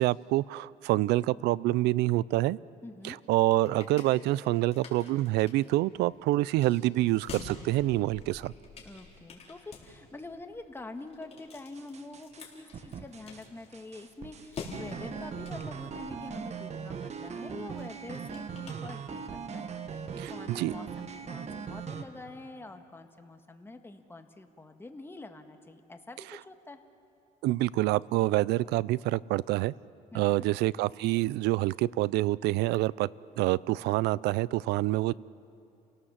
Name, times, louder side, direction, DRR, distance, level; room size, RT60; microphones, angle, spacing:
voice 1, 0.0-2.6 3.0-8.5 20.2-20.7 27.4-29.7 30.1-33.1 33.4-35.1, right 17 dB, 85° right, 22 dB, 0.4 m, -27 dB
voice 2, 2.8-3.2 8.8-26.9 30.1-30.5, left 2 dB, 15° left, 6 dB, 1.6 m, -46 dB
sound 1, 3.2-19.5, left 4 dB, 40° left, 4.3 m, -49 dB
sound 2, 11.8-12.4 12.7-13.4 13.7-22.0, right 6 dB, 40° right, 1.4 m, -40 dB
29.0 x 17.5 x 7.4 m, 2.6 s
cardioid pair, 110°, 17 cm